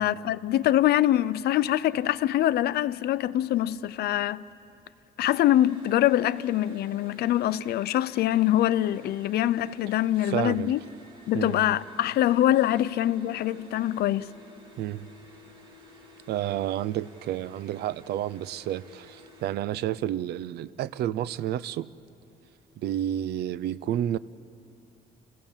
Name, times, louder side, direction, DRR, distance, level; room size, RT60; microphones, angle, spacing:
voice 1, 0.0-4.4 5.2-10.8 11.3-14.3, left 13 dB, 75° left, 0.5 m, -24 dB
sound 1, 5.2-19.5, equal, 30° right, 2.4 m, -53 dB
voice 2, 10.2-10.7 11.3-11.7 14.8-15.1 16.3-21.9 22.8-24.2, right 12 dB, 80° right, 0.5 m, -30 dB
29.5 x 16.5 x 7.3 m
cardioid pair, 155°, 16 cm